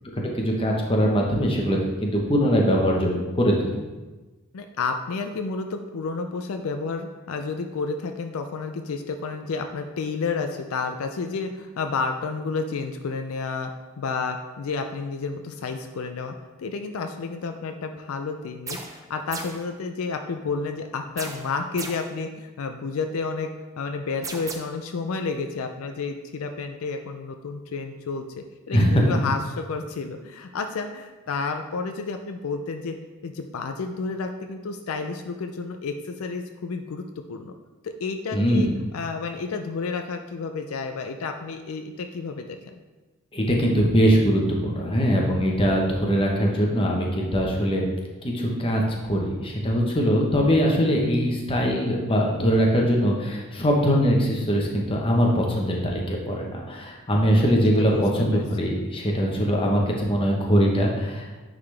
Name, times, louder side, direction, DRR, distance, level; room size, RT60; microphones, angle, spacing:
voice 1, 0.2-3.7 28.7-29.0 38.3-38.7 43.3-47.9 48.2-61.4, equal, 25° left, -1 dB, 0.9 m, -22 dB
voice 2, 4.5-13.7 14.0-33.0 33.2-37.5 37.8-42.8 57.8-58.0 58.3-58.8, left 4 dB, 70° left, 6 dB, 0.4 m, -31 dB
sound 1, 18.7-19.0 19.3-19.7 21.2-22.1 24.2-24.5, right 3 dB, 15° right, 0.5 m, -36 dB
9.6 x 3.8 x 3.3 m, 1.2 s
head